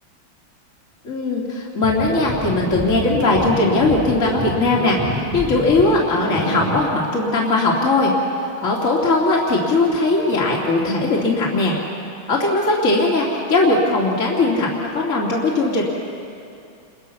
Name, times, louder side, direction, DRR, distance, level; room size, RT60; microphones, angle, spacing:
voice 1, 1.0-8.1 8.6-11.7 12.3-14.7 14.9-15.8, left 2 dB, 40° left, -4 dB, 3.0 m, -19 dB
sound 1, 1.8-6.8, right 1 dB, 15° right, 1.9 m, -27 dB
29.0 x 22.0 x 5.8 m, 2.5 s
omnidirectional pair, 2.3 m